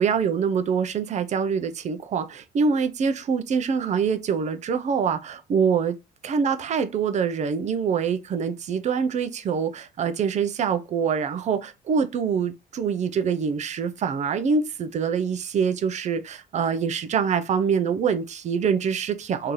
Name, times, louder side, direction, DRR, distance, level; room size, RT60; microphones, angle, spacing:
voice 1, 0.0-5.9 6.2-19.5, right 6 dB, 45° right, 0.6 m, -25 dB
3.1 x 2.8 x 3.8 m
cardioid pair, 110°, 17 cm